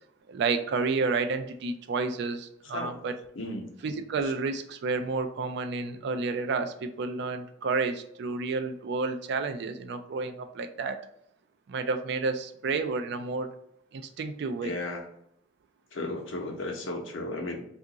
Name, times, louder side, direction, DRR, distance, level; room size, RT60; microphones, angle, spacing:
voice 1, 0.3-3.1 3.8-11.0 11.7-13.5 13.9-14.8, right 4 dB, 60° right, 8 dB, 0.3 m, -30 dB
voice 2, 3.4-3.7 14.6-15.0 15.9-17.7, left 2 dB, 85° left, 2 dB, 0.7 m, -34 dB
2.8 x 2.4 x 3.7 m, 0.72 s
head